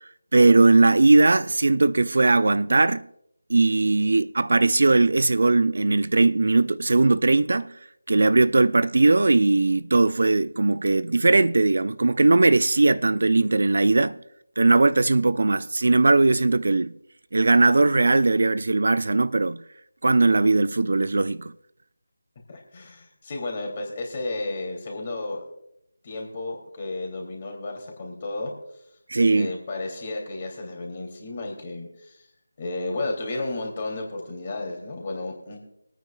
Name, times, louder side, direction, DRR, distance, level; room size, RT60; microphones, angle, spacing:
voice 1, 0.3-3.1 3.5-7.7 8.1-14.2 14.6-16.9 17.3-19.6 20.0-21.5 29.1-29.5, right 3 dB, 60° right, 0.4 m, -19 dB
voice 2, 22.5-25.4 26.0-28.5 29.3-32.3 32.6-35.6, left 2 dB, 35° left, 2.9 m, -33 dB
25.5 x 9.2 x 2.4 m
figure-of-eight pair, 160°, 0 cm